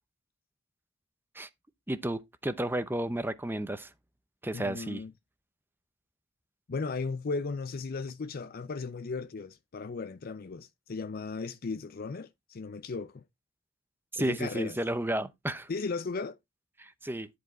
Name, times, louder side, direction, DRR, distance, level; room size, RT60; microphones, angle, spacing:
voice 1, 1.9-3.9 4.4-5.0 14.1-15.7 16.8-17.3, right 1 dB, 10° right, 0.7 m, -32 dB
voice 2, 4.5-5.1 6.7-13.2 14.2-14.8 15.7-16.4, left 4 dB, 50° left, 0.5 m, -36 dB
10.5 x 4.7 x 4.2 m
head